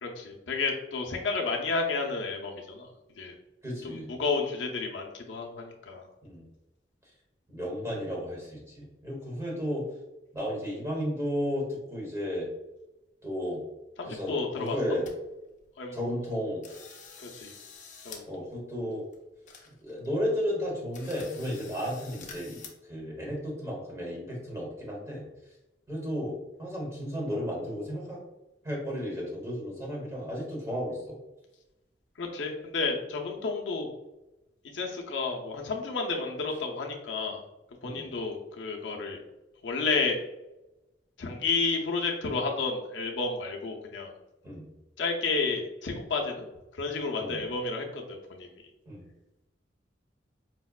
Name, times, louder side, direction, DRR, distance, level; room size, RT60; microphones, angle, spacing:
voice 1, 0.0-2.9 3.2-3.3 3.8-6.1 14.0-14.8 15.8-16.0 17.2-17.5 18.0-18.2 32.2-33.9 34.7-37.4 37.8-39.2 39.6-40.2 41.2-44.1 45.0-46.4 46.8-48.5, left 4 dB, 85° left, 1 dB, 0.6 m, -31 dB
voice 2, 3.6-4.1 6.2-6.5 7.5-9.9 10.3-12.5 13.2-13.6 14.0-15.1 15.9-16.6 18.3-19.0 19.8-25.2 25.9-26.3 26.6-28.2 28.6-31.2 37.8-38.1 44.4-44.7 47.2-47.4 48.9-49.1, equal, 15° right, -3 dB, 1.0 m, -33 dB
sound 1, 14.3-14.4 14.7-15.1 15.6-15.7 16.1-16.3 16.6-18.2 18.5-18.6 19.1-19.2 19.5-20.1 20.4-20.5 20.9-22.7, left 5 dB, 45° left, 0.5 m, -48 dB
4.7 x 2.1 x 2.3 m, 0.97 s
head